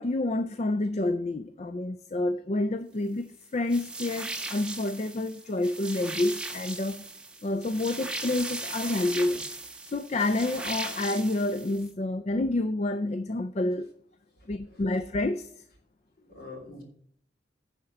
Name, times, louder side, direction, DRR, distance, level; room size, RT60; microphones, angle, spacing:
voice 1, 0.0-7.1 7.4-9.5 9.9-13.9 14.5-15.5, left 2 dB, 35° left, 0.4 m, -29 dB
sound 1, 3.7-11.9, right 2 dB, 5° right, 1.0 m, -38 dB
voice 2, 14.4-14.8 16.2-16.8, left 3 dB, 55° left, 3.0 m, -46 dB
10.5 x 4.3 x 7.8 m
head